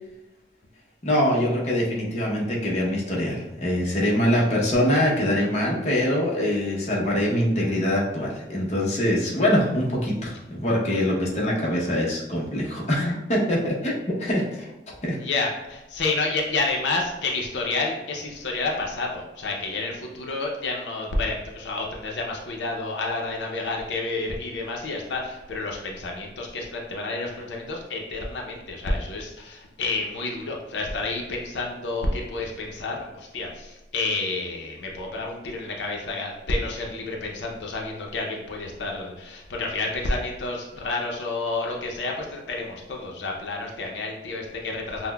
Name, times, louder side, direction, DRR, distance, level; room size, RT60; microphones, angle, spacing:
voice 1, 1.0-13.9 14.2-14.7 15.0-15.2, left 1 dB, 40° left, -4 dB, 0.7 m, -24 dB
voice 2, 15.2-45.1, left 3 dB, 90° left, 0 dB, 0.6 m, -29 dB
5.6 x 2.1 x 2.2 m, 1.0 s
head